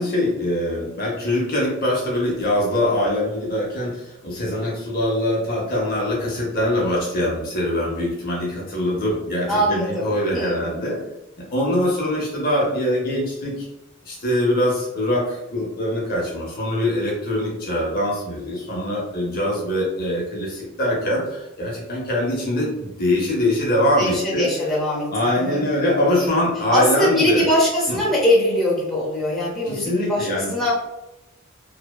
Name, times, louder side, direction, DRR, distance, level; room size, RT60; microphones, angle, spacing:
voice 1, 0.0-11.0 11.4-13.7 14.0-24.5 25.1-27.5 27.9-28.0 29.6-30.7, left 1 dB, 45° left, -3 dB, 0.7 m, -23 dB
voice 2, 9.5-10.6 24.0-25.1 25.4-25.7 26.7-30.7, left 1 dB, ahead, -8 dB, 0.8 m, -21 dB
2.7 x 2.1 x 2.2 m, 0.97 s
head